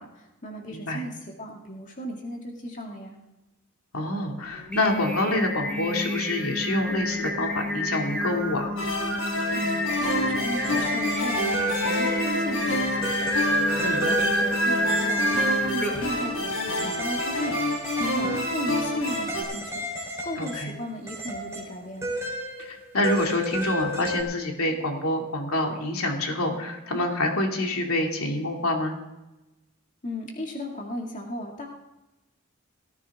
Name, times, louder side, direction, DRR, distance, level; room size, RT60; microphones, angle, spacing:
voice 1, 0.0-3.2 9.6-15.4 15.7-22.1 30.0-31.7, equal, 35° left, 0 dB, 2.2 m, -36 dB
voice 2, 0.7-1.0 3.9-8.7 13.8-14.0 20.4-20.7 22.6-28.9, left 1 dB, 85° left, 1 dB, 2.5 m, -27 dB
Singing, 4.5-16.2, equal, 5° left, 2.8 m, -29 dB
sound 1, 8.8-19.4, left 1 dB, 65° left, 4.0 m, -28 dB
sound 2, 10.0-12.5 13.0-15.6 16.8-20.8 21.1-24.2, right 1 dB, 15° right, 3.9 m, -33 dB
18.5 x 14.5 x 3.6 m, 1.0 s
head